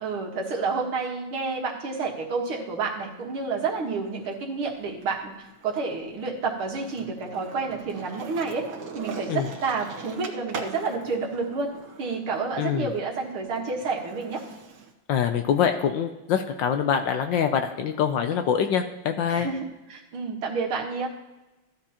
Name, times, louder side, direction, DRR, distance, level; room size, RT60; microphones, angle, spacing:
voice 1, 0.0-8.7 9.0-11.7 12.0-14.4 19.3-19.6 19.9-21.1, right 4 dB, 75° right, 0 dB, 2.4 m, -29 dB
Skateboard, 2.8-4.3 4.7-14.9, right 4 dB, 60° right, 1.6 m, -42 dB
voice 2, 12.6-12.9 15.1-19.5, left 8 dB, 75° left, 6 dB, 1.2 m, -24 dB
14.5 x 9.7 x 2.9 m, 1.0 s
omnidirectional pair, 2.4 m